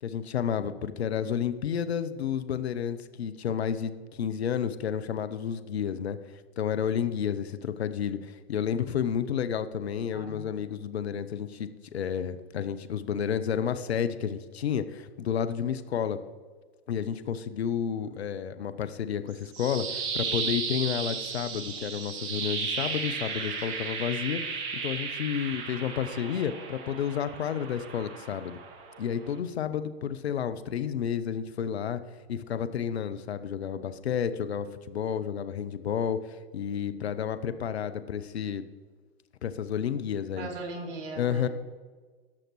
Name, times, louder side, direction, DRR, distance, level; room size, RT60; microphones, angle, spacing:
voice 1, 0.0-6.2 6.6-16.2 16.9-24.4 24.7-28.6 29.0-32.0 32.3-38.6 39.4-40.5 41.2-41.5, left 8 dB, 80° left, 12 dB, 0.7 m, -31 dB
voice 2, 10.1-10.5 40.4-41.5, right 2 dB, 60° right, 1 dB, 2.5 m, -38 dB
sound 1, 19.3-29.4, right 5 dB, 40° right, 1.6 m, -35 dB
17.5 x 6.4 x 3.1 m, 1.4 s
hypercardioid pair, 105°, 32 cm